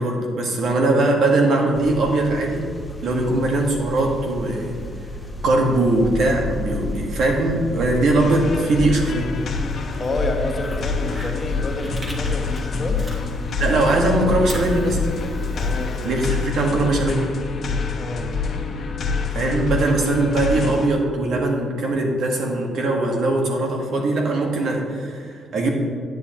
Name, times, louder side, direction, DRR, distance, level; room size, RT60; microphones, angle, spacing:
voice 1, 0.0-2.7 3.0-4.8 5.4-9.3 13.6-15.0 16.0-17.3 19.3-25.7, right 2 dB, 70° right, 1 dB, 1.6 m, -20 dB
sound 1, 1.7-15.8, left 1 dB, 10° left, 1.2 m, -33 dB
sound 2, 8.2-20.9, left 4 dB, 55° left, 1.2 m, -26 dB
Fire, 9.7-13.7 14.0-16.8, equal, 15° right, 2.1 m, -41 dB
voice 2, 10.0-13.0 15.5-16.3 18.0-18.3, left 1 dB, 30° left, 2 dB, 1.3 m, -29 dB
9.8 x 9.2 x 3.1 m, 2.2 s
cardioid pair, 90°, 0 cm